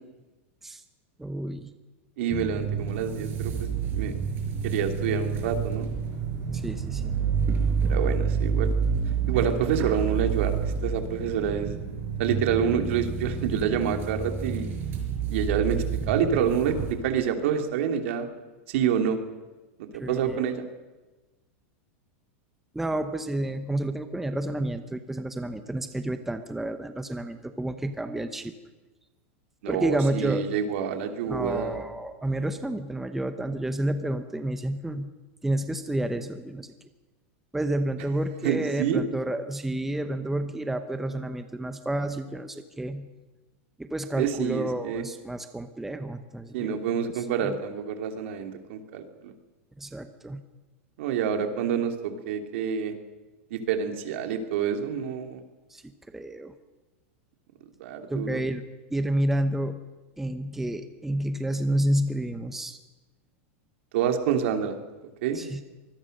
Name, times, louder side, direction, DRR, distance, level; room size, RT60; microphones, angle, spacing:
voice 1, 1.2-1.7 6.5-7.2 19.9-20.4 22.7-28.5 29.7-30.5 31.3-35.1 35.4-36.7 37.5-43.1 43.8-47.1 47.4-47.5 49.8-50.4 55.7-55.8 56.1-56.5 58.1-59.8 60.2-62.8 65.3-65.6, right 1 dB, 5° right, 8 dB, 0.8 m, -30 dB
voice 2, 2.2-4.1 4.6-5.9 7.9-8.7 9.3-11.7 12.2-14.7 15.3-18.3 18.7-19.2 19.8-20.7 29.6-31.8 38.4-39.0 44.2-45.0 46.5-49.3 51.0-51.9 52.3-52.9 53.5-55.4 57.8-58.3 63.9-64.7 65.2-65.4, right 7 dB, 60° right, 6 dB, 2.8 m, -27 dB
sound 1, 2.3-16.9, right 6 dB, 30° right, 5.2 m, -29 dB
25.0 x 20.5 x 6.6 m, 1.2 s
supercardioid pair, 160°, 7 cm